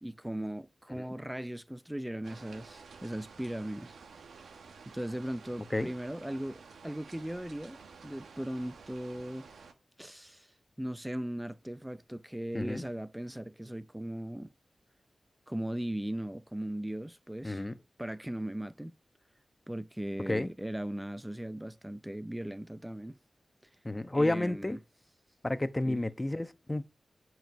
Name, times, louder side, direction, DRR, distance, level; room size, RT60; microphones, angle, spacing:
voice 1, 0.0-4.0 4.9-9.5 10.0-10.5 10.8-14.5 15.5-17.7 18.0-18.9 19.7-23.2 24.1-24.8 25.9-26.0, right 1 dB, 10° right, 0.5 m, -38 dB
sound 1, 2.2-9.7, right 5 dB, 90° right, 1.1 m, -52 dB
voice 2, 12.5-12.8 17.4-17.7 20.3-20.5 23.8-24.8 25.4-26.8, left 1 dB, 20° left, 1.0 m, -31 dB
10.5 x 4.6 x 6.5 m
cardioid pair, 50°, 0 cm